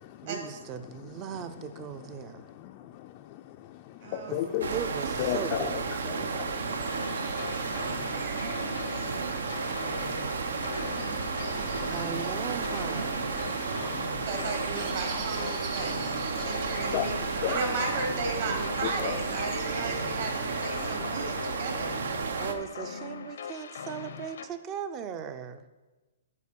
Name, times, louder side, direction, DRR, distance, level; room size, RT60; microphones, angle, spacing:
voice 1, 0.2-2.5 4.3-4.4 4.7-5.9 11.9-13.2 22.4-25.6, right 8 dB, 25° right, 11 dB, 0.5 m, -38 dB
voice 2, 2.6-4.7 5.2-5.8 6.1-11.9 13.4-14.3 16.3-16.5 16.9-17.1 17.4-17.6 18.8-19.2 21.0-21.6, left 12 dB, 35° left, 4 dB, 0.4 m, -37 dB
voice 3, 4.0-4.7 14.2-22.0, right 3 dB, 55° right, 2 dB, 2.1 m, -35 dB
sound 1, 4.3-20.0, right 5 dB, 40° right, 1.5 m, -45 dB
sound 2, 4.6-22.5, right 5 dB, 80° right, 0.7 m, -32 dB
sound 3, 6.9-24.5, left 6 dB, 75° left, 0.7 m, -41 dB
8.3 x 4.4 x 6.7 m, 1.2 s
hypercardioid pair, 150°, 0 cm